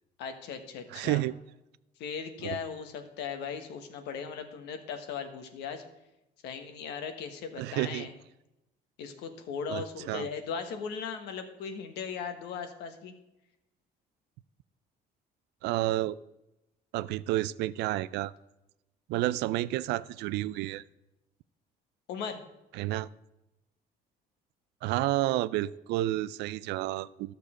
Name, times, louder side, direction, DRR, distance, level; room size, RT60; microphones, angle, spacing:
voice 1, 0.2-1.2 2.0-5.8 6.4-8.1 9.0-13.1 22.1-22.4, left 6 dB, 85° left, 7 dB, 1.3 m, -38 dB
voice 2, 0.9-1.3 2.4-2.6 7.6-8.1 9.7-10.3 15.6-16.2 16.9-18.3 19.1-20.8 22.7-23.1 24.8-27.3, right 16 dB, 85° right, 18 dB, 0.4 m, -30 dB
12.5 x 6.7 x 4.9 m, 0.94 s
cardioid pair, 110°, 17 cm